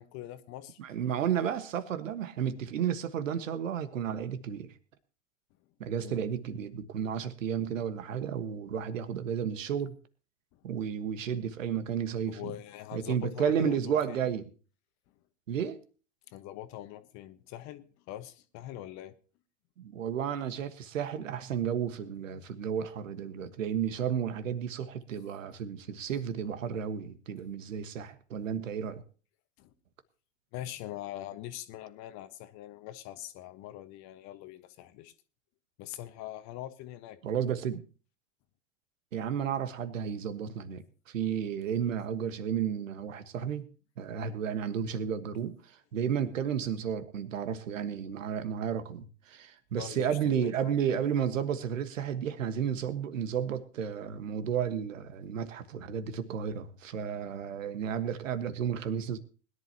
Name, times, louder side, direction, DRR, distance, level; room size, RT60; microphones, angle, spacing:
voice 1, 0.0-0.8 6.0-6.2 10.5-10.6 12.3-14.2 15.1-15.2 16.3-19.1 29.6-29.7 30.5-35.1 35.8-37.2 49.7-50.8, left 14 dB, 45° left, 11 dB, 1.3 m, -43 dB
voice 2, 0.8-4.7 5.8-10.0 10.6-12.5 12.9-14.4 15.5-15.8 19.8-29.0 37.2-37.8 39.1-43.7 44.0-59.2, right 8 dB, 80° right, 11 dB, 1.5 m, -32 dB
21.0 x 11.0 x 2.9 m, 0.37 s
hypercardioid pair, 100°, 38 cm